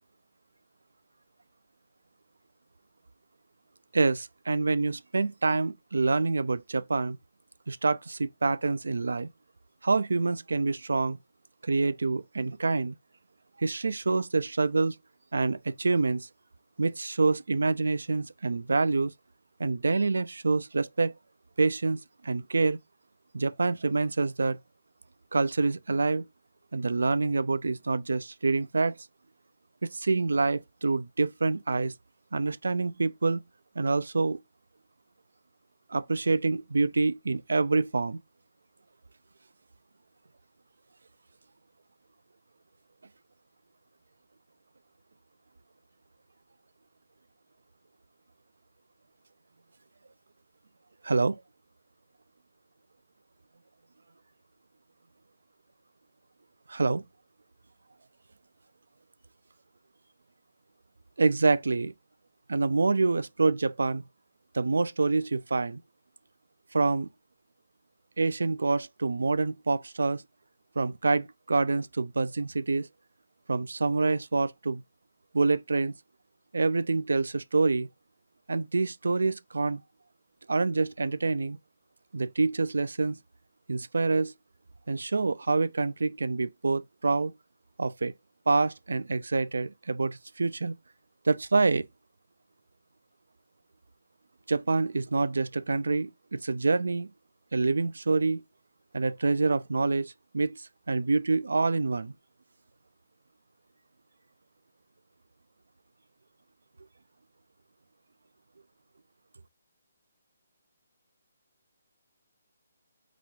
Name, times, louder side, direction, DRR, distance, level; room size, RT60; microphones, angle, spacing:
voice 1, 3.9-7.2 7.7-9.3 9.8-11.2 11.6-13.0 13.6-15.0 15.3-16.3 16.8-19.1 19.6-21.1 21.6-22.8 23.3-24.6 25.3-26.3 26.7-29.0 29.8-31.9 32.3-33.4 33.8-34.4 35.9-38.2 51.0-51.4 56.7-57.0 61.2-61.9 62.5-64.0 64.5-65.8 66.7-67.1 68.2-70.2 70.8-72.9 73.5-74.8 75.3-75.9 76.5-77.9 78.5-79.8 80.5-81.6 82.1-83.2 83.7-84.3 84.9-87.3 87.8-88.1 88.5-90.7 91.3-91.9 94.5-97.1 97.5-98.4 98.9-102.1, right 3 dB, 90° right, 0.3 m, -26 dB
4.0 x 2.3 x 4.5 m
hypercardioid pair, 165°, 0 cm